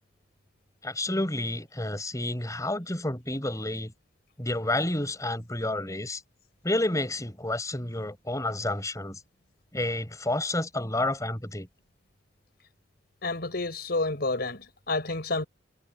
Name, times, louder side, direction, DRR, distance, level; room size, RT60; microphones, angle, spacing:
voice 1, 0.8-3.9 4.4-6.2 6.6-9.2 9.7-11.7, left 1 dB, 20° left, 5.8 m, -30 dB
voice 2, 13.2-15.5, left 2 dB, 55° left, 5.3 m, -29 dB
head